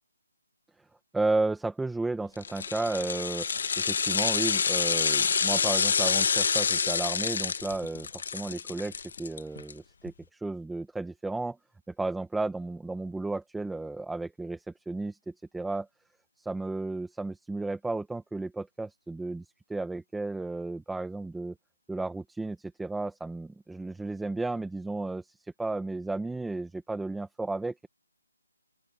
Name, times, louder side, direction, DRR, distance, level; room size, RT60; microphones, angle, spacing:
voice 1, 1.1-3.5 3.8-11.6 12.0-15.9 16.4-21.5 21.9-27.9, right 2 dB, ahead, 1.2 m, -33 dB
sound 1, 2.4-9.7 10.1-10.2, left 6 dB, 40° left, 1.6 m, -27 dB
open air
hypercardioid pair, 175°, 0 cm